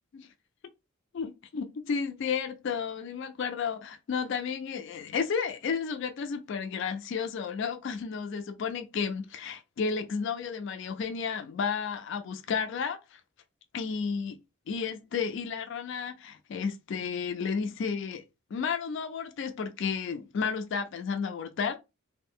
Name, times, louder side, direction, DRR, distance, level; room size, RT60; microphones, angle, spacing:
voice 1, 1.1-13.2 13.7-14.4 14.7-18.2 18.5-21.8, left 6 dB, 60° left, 0.3 m, -32 dB
2.4 x 2.1 x 3.4 m
head